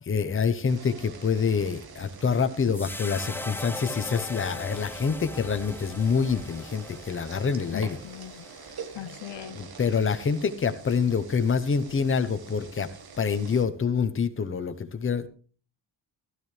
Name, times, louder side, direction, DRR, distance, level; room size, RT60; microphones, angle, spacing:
voice 1, 0.0-8.0 9.5-15.3, left 6 dB, 25° left, 0.8 m, -26 dB
sound 1, 0.7-13.7, right 5 dB, 50° right, 1.5 m, -46 dB
sound 2, 2.7-9.1, left 1 dB, 5° left, 0.5 m, -40 dB
voice 2, 7.7-8.5 8.9-9.6, left 13 dB, 65° left, 0.7 m, -40 dB
15.5 x 12.5 x 3.3 m
wide cardioid pair, 175°, 46 cm